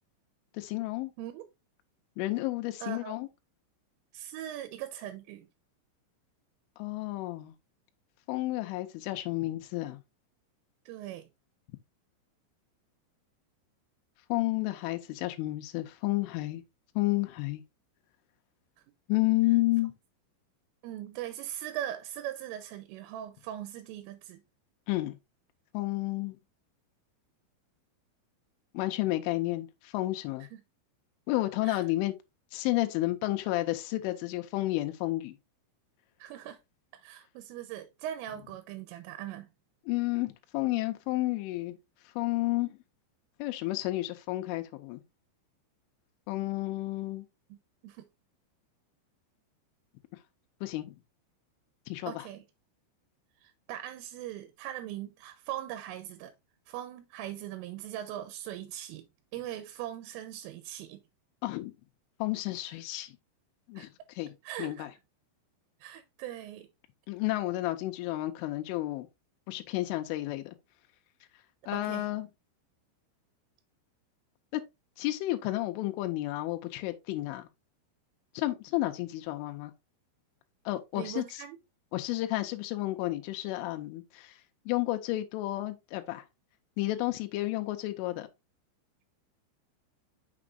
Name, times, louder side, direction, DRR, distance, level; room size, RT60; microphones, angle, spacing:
voice 1, 0.5-1.1 2.2-3.3 6.8-7.6 8.3-10.0 14.3-16.6 17.0-17.6 19.1-19.9 24.9-25.2 25.7-26.4 28.7-30.5 31.3-32.1 32.5-35.4 39.9-42.8 43.4-45.0 46.3-47.3 50.1-50.2 50.6-51.0 51.9-52.3 61.4-61.7 62.2-63.2 63.7-64.9 67.1-69.1 69.5-70.6 71.3-72.3 74.5-74.6 75.0-77.5 78.3-79.7 80.7-81.4 81.9-86.3 86.8-88.3, left 18 dB, 85° left, 3.2 m, -31 dB
voice 2, 2.8-3.2 4.1-5.5 10.9-11.3 20.8-24.4 31.6-31.8 36.2-36.6 36.9-39.5 47.8-48.0 52.1-52.4 53.4-56.3 56.7-59.1 59.3-61.0 63.8-63.9 64.4-64.9 65.8-66.7 71.7-72.1 80.9-81.6, right 12 dB, 90° right, 3.3 m, -40 dB
6.7 x 6.2 x 2.4 m
omnidirectional pair, 5.6 m